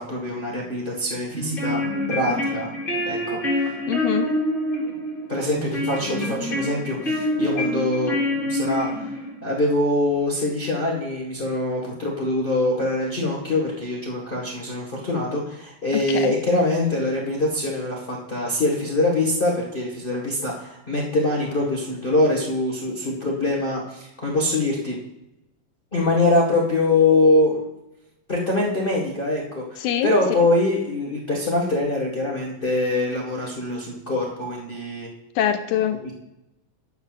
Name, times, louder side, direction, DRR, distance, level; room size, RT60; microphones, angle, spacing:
voice 1, 0.0-1.8 2.1-2.7 3.0-3.7 5.3-8.1 8.4-9.1 9.4-25.0 25.9-27.6 28.3-35.1 36.0-36.1, left 2 dB, 40° left, -2 dB, 0.7 m, -23 dB
sound 1, 1.3-9.4, left 1 dB, 15° left, 2.5 m, -26 dB
voice 2, 3.9-4.3 15.9-16.3 29.8-30.1 35.4-36.1, left 10 dB, 80° left, 7 dB, 2.0 m, -24 dB
12.0 x 9.3 x 2.4 m, 0.90 s
omnidirectional pair, 3.8 m